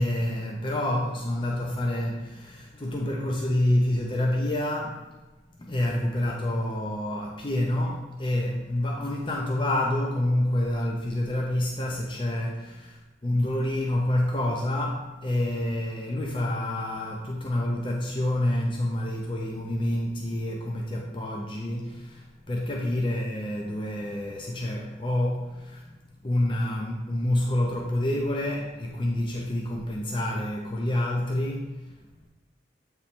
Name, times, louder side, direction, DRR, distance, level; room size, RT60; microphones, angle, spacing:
voice 1, 0.0-5.1 5.6-32.3, left 1 dB, 25° left, -1 dB, 0.5 m, -28 dB
8.2 x 3.1 x 4.3 m, 1.2 s
head